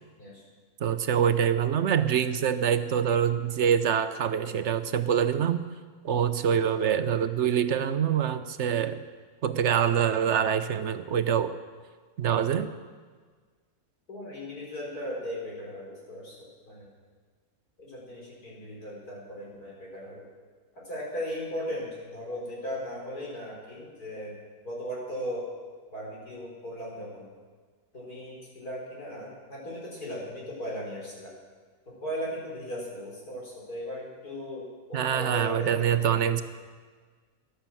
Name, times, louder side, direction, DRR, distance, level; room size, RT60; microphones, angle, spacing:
voice 1, 0.8-5.6 6.0-9.0 9.4-11.5 12.2-12.7 34.9-36.4, right 8 dB, 55° right, 11 dB, 0.9 m, -25 dB
voice 2, 14.1-16.4 16.6-16.9 17.8-20.3 20.8-24.3 24.6-25.5 25.9-27.3 27.9-31.3 31.9-36.3, equal, 90° left, -4 dB, 5.1 m, -37 dB
14.0 x 11.5 x 7.5 m, 1.5 s
omnidirectional pair, 1.6 m